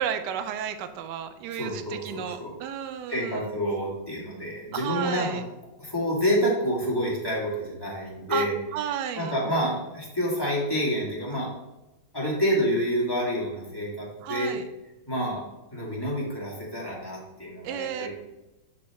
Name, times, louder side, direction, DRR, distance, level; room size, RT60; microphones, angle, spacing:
voice 1, 0.0-3.5 4.7-5.4 8.3-9.3 14.2-14.6 17.6-18.1, right 9 dB, 70° right, 9 dB, 1.1 m, -32 dB
voice 2, 1.5-2.5 3.1-5.4 5.8-8.6 9.2-11.5 12.1-14.6 15.1-15.4 15.7-18.1, equal, 10° left, -5 dB, 2.0 m, -28 dB
10.5 x 4.7 x 3.0 m, 0.99 s
omnidirectional pair, 2.2 m